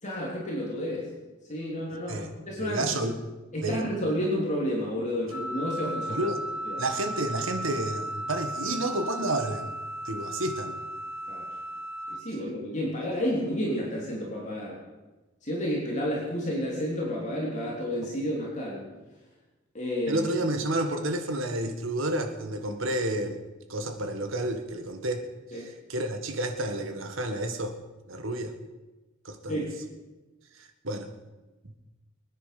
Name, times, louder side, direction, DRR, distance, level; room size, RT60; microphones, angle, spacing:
voice 1, 0.0-1.1 1.5-2.9 3.5-6.3 6.7-6.8 11.3-11.5 12.1-14.8 15.4-18.8 19.7-20.3 25.5-25.7 29.5-29.7, equal, 35° left, -4 dB, 3.4 m, -31 dB
voice 2, 1.9-2.3 2.6-3.2 3.6-3.8 6.1-6.4 6.8-9.7 10.0-10.8 20.1-23.4 23.7-25.3 25.5-25.6 25.9-27.8 28.1-28.5 29.3-29.7 30.5-31.1, right 1 dB, 70° right, 6 dB, 1.7 m, -30 dB
Wind instrument woodwind instrument, 5.3-12.2, right 1 dB, 85° left, 1.4 m, -35 dB
23.5 x 9.9 x 5.9 m, 1.2 s
head